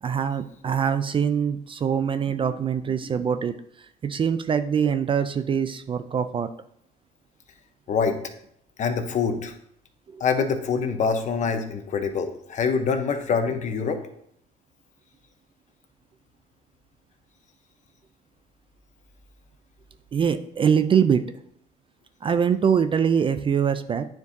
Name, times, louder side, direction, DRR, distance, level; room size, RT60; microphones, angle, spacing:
voice 1, 0.0-6.5 10.1-10.2 20.1-21.2 22.2-24.1, right 7 dB, 30° right, 10 dB, 0.4 m, -23 dB
voice 2, 7.9-8.2 8.8-9.5 10.2-14.0, left 5 dB, 45° left, 7 dB, 0.9 m, -25 dB
9.4 x 4.5 x 2.7 m, 0.70 s
cardioid pair, 110°, 17 cm